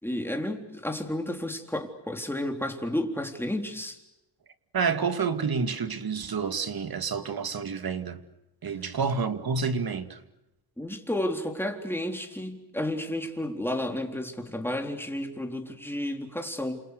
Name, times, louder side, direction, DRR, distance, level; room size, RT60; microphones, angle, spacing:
voice 1, 0.0-4.0 10.8-16.8, left 1 dB, 5° left, 3.8 m, -32 dB
voice 2, 4.7-8.2 8.6-10.2, right 5 dB, 50° right, 2.4 m, -29 dB
29.0 x 28.0 x 6.7 m
cardioid pair, 90°, 45 cm